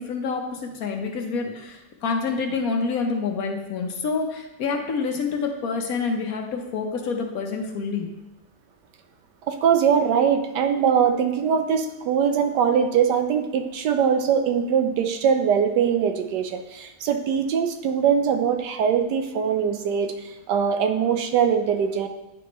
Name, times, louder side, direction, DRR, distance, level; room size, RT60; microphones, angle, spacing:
voice 1, 0.0-8.1, left 4 dB, 65° left, 3 dB, 1.2 m, -27 dB
voice 2, 9.5-22.1, right 7 dB, 90° right, 7 dB, 1.3 m, -22 dB
10.0 x 4.7 x 3.0 m, 1.0 s
omnidirectional pair, 1.8 m